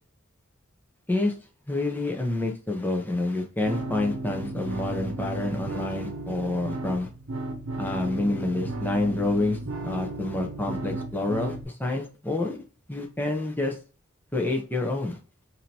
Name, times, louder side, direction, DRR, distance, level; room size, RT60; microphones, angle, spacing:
voice 1, 1.7-7.1 7.8-12.6 12.9-13.7 14.3-15.2, left 2 dB, 10° left, 2 dB, 0.8 m, -28 dB
sound 1, 3.6-11.6, right 2 dB, 85° right, 0.8 m, -34 dB
4.9 x 2.8 x 2.8 m, 0.35 s
head